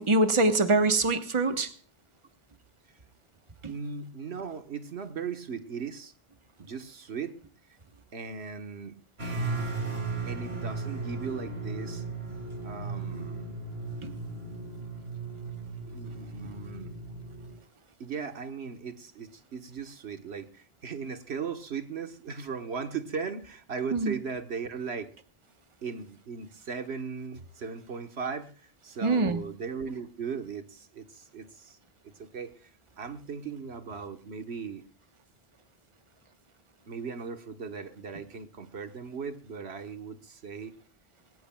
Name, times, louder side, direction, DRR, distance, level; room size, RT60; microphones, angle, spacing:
voice 1, 0.0-1.7 3.6-3.7 14.0-14.1 23.9-24.1 29.0-29.4, right 2 dB, 30° right, 8 dB, 1.2 m, -24 dB
voice 2, 3.7-6.1 6.6-7.4 8.1-9.0 10.2-12.0 12.6-13.4 15.8-16.9 18.0-25.1 25.8-31.8 32.0-32.7 33.0-34.8 36.9-40.7, right 5 dB, 90° right, 8 dB, 1.5 m, -38 dB
sound 1, 9.2-17.6, right 3 dB, 75° right, 3.3 m, -36 dB
20.0 x 17.5 x 2.3 m, 0.42 s
omnidirectional pair, 1.1 m